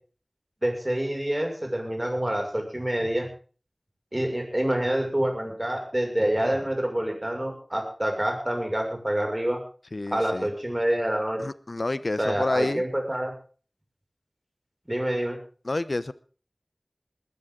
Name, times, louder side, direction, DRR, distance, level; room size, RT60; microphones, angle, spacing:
voice 1, 0.6-3.3 4.1-9.6 10.1-11.4 12.2-13.3 14.9-15.4, right 1 dB, 25° right, 2 dB, 6.3 m, -27 dB
voice 2, 9.9-10.5 11.4-12.8 15.6-16.1, left 2 dB, 75° left, 15 dB, 0.9 m, -29 dB
20.5 x 13.5 x 3.9 m, 0.39 s
wide cardioid pair, 45°, 0 cm